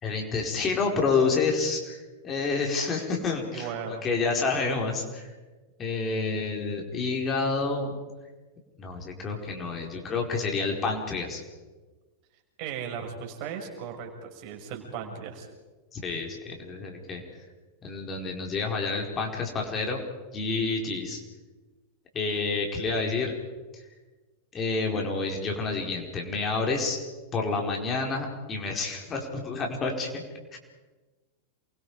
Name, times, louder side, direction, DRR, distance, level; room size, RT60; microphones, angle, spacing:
voice 1, 0.0-5.3 5.8-8.0 8.8-11.4 15.9-17.2 17.8-20.0 20.3-21.2 22.1-23.3 24.5-27.0 27.3-30.2 30.5-30.6, left 4 dB, 25° left, 1 dB, 4.9 m, -29 dB
voice 2, 3.5-4.0 12.6-15.5, right 7 dB, 45° right, 2 dB, 5.8 m, -36 dB
28.5 x 23.5 x 5.1 m, 1.3 s
figure-of-eight pair, 90°, 0 cm